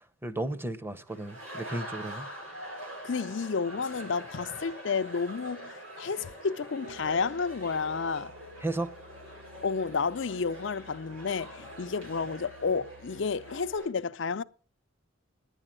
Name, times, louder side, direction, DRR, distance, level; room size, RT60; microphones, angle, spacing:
voice 1, 0.0-2.3 8.6-8.9, right 2 dB, 10° right, 0.8 m, -34 dB
sound 1, 1.1-13.9, right 1 dB, 80° right, 7.8 m, -44 dB
voice 2, 3.0-8.3 9.6-14.4, left 5 dB, 60° left, 0.5 m, -31 dB
Musical instrument, 6.9-13.8, left 6 dB, 65° right, 5.9 m, -56 dB
11.0 x 9.8 x 7.5 m
head